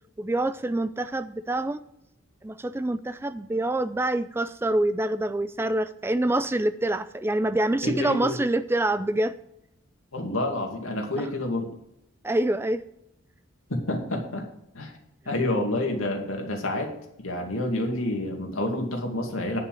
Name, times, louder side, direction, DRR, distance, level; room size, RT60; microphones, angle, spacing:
voice 1, 0.2-1.8 2.4-9.4 11.2-11.3 12.2-12.8, right 1 dB, 10° right, 13 dB, 0.3 m, -26 dB
voice 2, 7.8-8.4 10.1-11.7 13.7-14.4 14.7-14.9 15.3-16.9 17.2-19.6, left 1 dB, 85° left, 2 dB, 2.3 m, -28 dB
9.7 x 5.7 x 7.6 m, 0.80 s
head